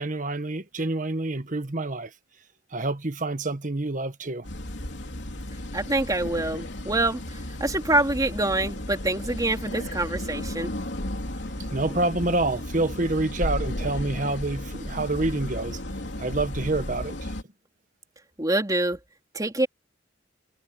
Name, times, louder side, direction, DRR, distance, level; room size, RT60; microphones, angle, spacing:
voice 1, 0.0-2.1 2.7-4.5 11.5-15.8 16.2-17.3, right 2 dB, 45° right, 1.4 m, -27 dB
sound 1, 4.4-17.4, left 1 dB, 80° left, 3.3 m, -34 dB
voice 2, 5.7-10.7 18.4-19.0 19.3-19.7, right 2 dB, 20° right, 3.1 m, -26 dB
head